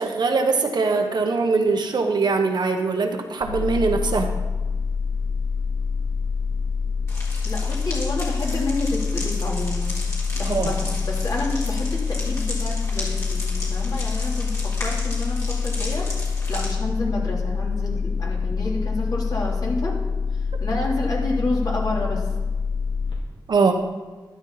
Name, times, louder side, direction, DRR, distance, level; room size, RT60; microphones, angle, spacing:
voice 1, 0.0-4.3 10.5-10.7 23.5-23.7, right 4 dB, 60° right, 4 dB, 1.2 m, -22 dB
sound 1, 3.4-23.1, left 5 dB, 80° left, 3.0 m, -26 dB
voice 2, 7.1-9.9 10.3-16.0 16.5-19.9 20.6-22.2, left 2 dB, 55° left, -3 dB, 3.4 m, -29 dB
sound 2, 7.1-16.7, left 2 dB, 35° left, 3.8 m, -36 dB
12.5 x 12.0 x 4.2 m, 1.3 s
wide cardioid pair, 140°, 8 cm